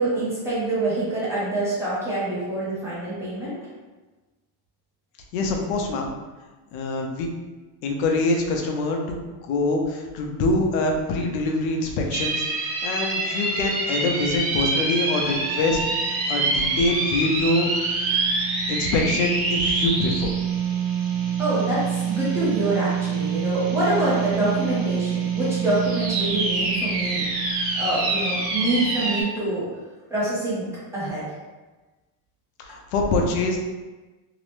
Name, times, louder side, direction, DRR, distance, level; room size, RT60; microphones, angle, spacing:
voice 1, 0.0-3.6 21.4-27.3 27.8-29.7 30.1-30.7 30.9-31.2, right 1 dB, 5° right, -10 dB, 0.4 m, -25 dB
voice 2, 5.3-6.1 6.7-7.3 7.8-9.2 9.5-15.8 16.1-17.7 18.7-20.3 32.6-33.6, left 2 dB, 90° left, 1 dB, 0.7 m, -24 dB
sound 1, 12.1-29.2, right 4 dB, 85° right, 1.1 m, -25 dB
2.8 x 2.0 x 3.1 m, 1.2 s
cardioid pair, 175°, 50 cm